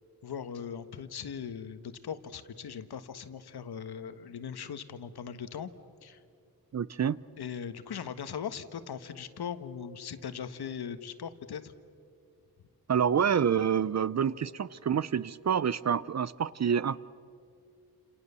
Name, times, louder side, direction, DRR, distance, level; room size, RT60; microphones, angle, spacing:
voice 1, 0.2-5.7 6.0-6.2 7.4-11.7, left 7 dB, 75° left, 1.4 m, -39 dB
voice 2, 6.7-7.2 12.9-17.0, right 8 dB, 45° right, 0.6 m, -27 dB
29.5 x 28.0 x 6.9 m
wide cardioid pair, 130°, 39 cm